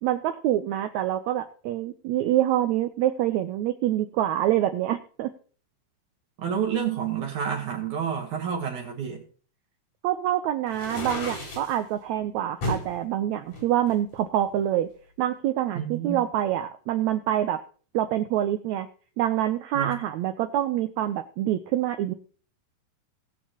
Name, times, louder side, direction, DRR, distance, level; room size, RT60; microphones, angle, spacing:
voice 1, 0.0-5.3 10.0-14.9 15.2-17.6 17.9-18.9 19.2-22.1, right 12 dB, 85° right, 9 dB, 1.6 m, -26 dB
voice 2, 6.4-9.2 15.7-16.3 19.7-20.0, right 7 dB, 65° right, 0 dB, 2.7 m, -29 dB
sound 1, 10.7-11.8 12.6-12.9 13.5-14.6, left 1 dB, 65° left, 5.6 m, -33 dB
19.5 x 7.2 x 2.9 m, 0.42 s
omnidirectional pair, 3.9 m